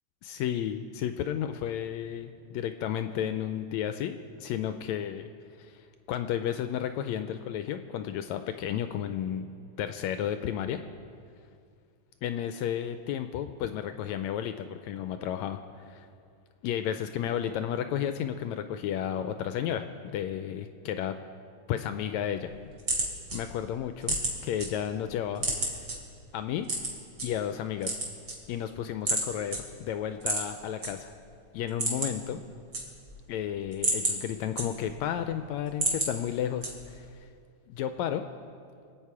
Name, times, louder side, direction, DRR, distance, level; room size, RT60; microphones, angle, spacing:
voice 1, 0.2-5.2 5.6-9.5 9.8-10.8 12.2-16.1 16.6-21.2 21.7-22.5 23.3-24.2 24.4-25.8 26.3-26.7 27.2-28.0 28.5-31.1 31.5-32.4 33.3-37.3 37.7-38.2, left 10 dB, 80° left, 8 dB, 1.7 m, -32 dB
sound 1, 22.4-24.7 25.0-25.9 26.6-27.3 27.7-28.7 29.1-29.2 29.5-29.6 30.2-30.9 31.2-31.3 31.6-32.3 32.5-33.2 33.6-35.1 35.5-36.1 36.6-37.0, right 2 dB, 35° right, 2.9 m, -30 dB
24.5 x 8.8 x 4.8 m, 2.3 s
omnidirectional pair, 3.4 m